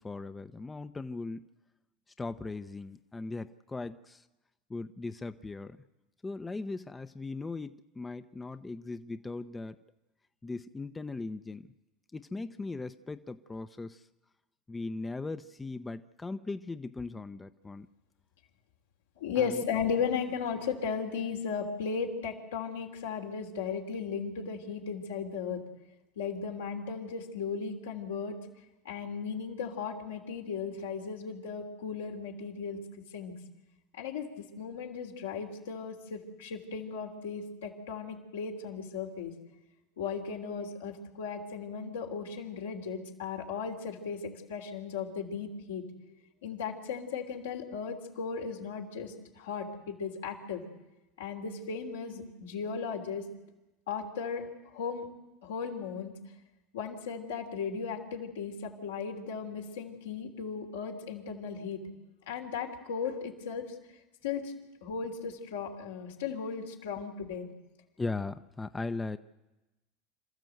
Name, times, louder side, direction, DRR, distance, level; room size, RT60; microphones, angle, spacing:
voice 1, 0.0-1.5 2.2-4.3 4.7-5.8 6.2-9.8 10.4-11.7 12.1-14.0 14.7-17.9 19.4-19.6 68.0-69.2, left 3 dB, 15° left, 10 dB, 0.8 m, -38 dB
voice 2, 19.2-25.6 26.1-28.4 28.8-32.8 33.1-33.3 33.9-39.3 40.0-45.8 46.4-50.6 51.2-53.3 53.9-55.1 55.4-56.2 56.7-61.8 62.3-63.7 64.2-64.5 64.8-67.5, left 6 dB, 85° left, 1 dB, 3.2 m, -36 dB
27.0 x 14.0 x 7.9 m, 1.1 s
hypercardioid pair, 85°, 0 cm